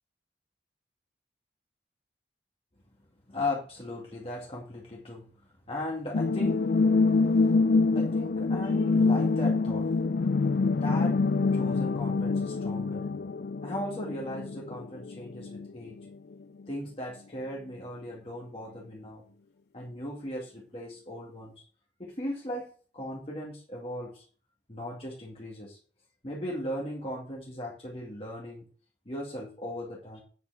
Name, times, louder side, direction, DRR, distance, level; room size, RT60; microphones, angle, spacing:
voice 1, 3.3-5.3 5.7-6.9 7.3-7.5 7.9-9.9 10.7-11.2 11.5-13.1 13.6-16.0 16.7-19.2 19.7-21.6 22.0-24.3 24.7-25.8 26.2-28.7 29.1-30.2, left 1 dB, 35° left, -3 dB, 2.2 m, -37 dB
sound 1, 6.1-15.7 16.0-16.1, left 3 dB, 60° left, 0.4 m, -26 dB
9.5 x 5.8 x 6.2 m, 0.41 s
head